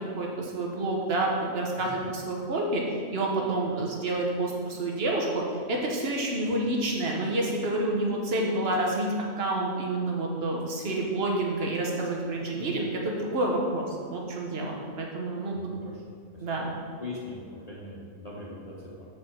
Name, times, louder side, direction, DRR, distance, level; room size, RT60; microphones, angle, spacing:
voice 1, 0.0-2.8 3.1-5.4 5.7-9.1 9.4-15.6 16.4-16.7, right 2 dB, 50° right, -1 dB, 1.3 m, -28 dB
voice 2, 15.5-16.0 16.3-16.4 17.0-19.1, left 2 dB, 30° left, -6 dB, 1.0 m, -41 dB
7.6 x 4.7 x 4.4 m, 2.1 s
omnidirectional pair, 1.4 m